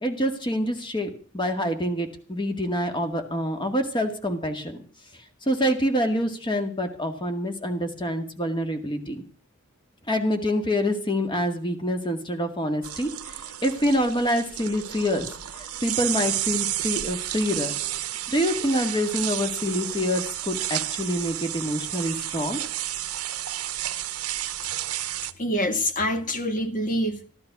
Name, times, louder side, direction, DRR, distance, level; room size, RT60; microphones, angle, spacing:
voice 1, 0.0-4.8 5.4-9.2 10.1-15.3 15.5-17.7 18.3-22.6, equal, 20° left, 6 dB, 2.0 m, -26 dB
sound 1, 12.8-25.3, right 13 dB, 75° right, 0.9 m, -31 dB
voice 2, 25.4-27.3, left 1 dB, 35° left, 7 dB, 1.8 m, -26 dB
14.0 x 12.5 x 6.0 m, 0.40 s
head